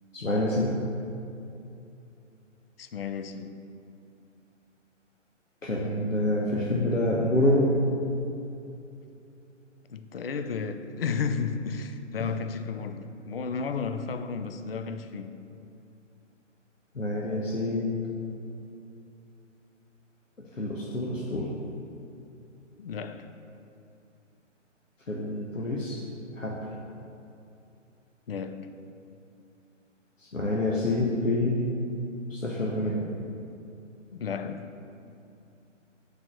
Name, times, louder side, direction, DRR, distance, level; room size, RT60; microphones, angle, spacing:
voice 1, 0.1-0.8 5.6-7.8 12.2-12.3 16.9-18.0 20.4-21.5 25.1-26.0 26.4-26.6 30.2-31.6 32.3-33.1, left 1 dB, 90° left, 1.0 m, -27 dB
voice 2, 2.8-3.6 9.9-15.4 22.8-23.3 28.3-28.7 34.1-34.8, left 5 dB, 50° left, 0.5 m, -33 dB
6.6 x 4.8 x 6.3 m
figure-of-eight pair, 135°, 38 cm